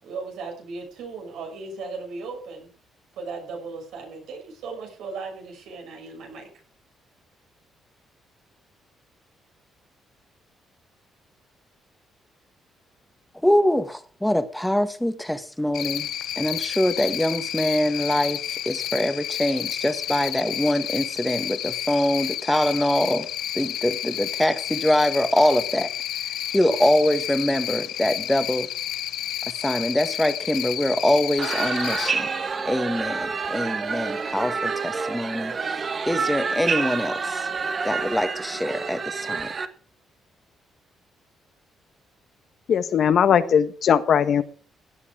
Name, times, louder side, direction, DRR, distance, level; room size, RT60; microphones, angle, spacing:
voice 1, 0.0-2.7 3.2-6.5, right 4 dB, 85° right, 6.4 m, -36 dB
voice 2, 13.4-16.1 16.3-23.3 23.5-25.9 26.5-28.7 29.4-32.3 32.6-37.5 37.8-39.5, left 1 dB, 5° left, 1.7 m, -24 dB
Cricket, 15.7-32.1, left 12 dB, 80° left, 0.9 m, -31 dB
sound 1, 31.4-39.7, right 5 dB, 40° right, 1.6 m, -28 dB
voice 3, 42.7-44.4, left 8 dB, 60° left, 1.4 m, -19 dB
16.5 x 9.8 x 5.0 m
cardioid pair, 90°, 0 cm